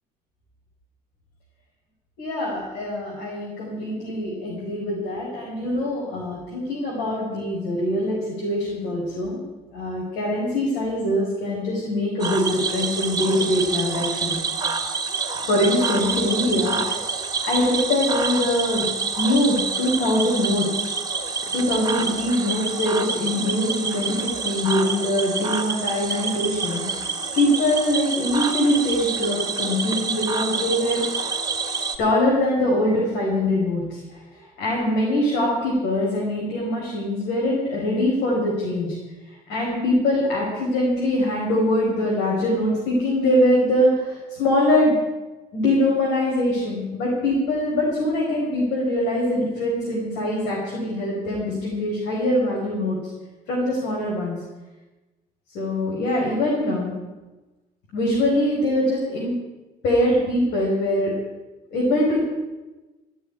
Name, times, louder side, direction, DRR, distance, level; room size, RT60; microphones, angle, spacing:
voice 1, 2.2-9.4 9.7-14.4 15.5-17.0 17.4-18.8 19.2-20.9 21.5-26.8 27.3-31.0 32.0-39.0 39.5-45.0 45.5-53.0 53.5-54.4 55.5-57.1 57.9-59.3 59.8-61.1 61.7-62.2, left 1 dB, 90° left, -4 dB, 4.8 m, -23 dB
Cricket / Frog, 12.2-32.0, right 4 dB, 20° right, 1.9 m, -27 dB
14.0 x 7.1 x 9.8 m, 1.1 s
cardioid pair, 110°, 17 cm